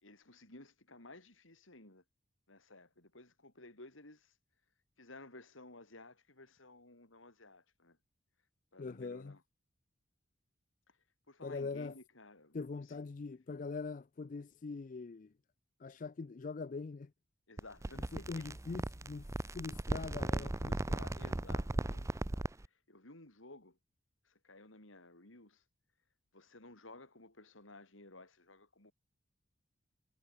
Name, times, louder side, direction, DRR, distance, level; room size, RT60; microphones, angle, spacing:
voice 1, 0.0-2.0 2.5-4.3 5.0-8.0 8.7-9.4 10.9-11.0 11.3-12.6 12.9-13.0 17.5-18.5 20.3-23.8 24.2-25.6 26.3-28.9, left 2 dB, 85° left, 4.9 m, -56 dB
voice 2, 8.8-9.4 11.4-12.0 12.5-15.3 15.8-17.1 18.0-19.3 19.5-20.8, left 4 dB, 40° left, 0.4 m, -42 dB
sound 1, 17.6-22.7, right 1 dB, 15° right, 0.5 m, -37 dB
head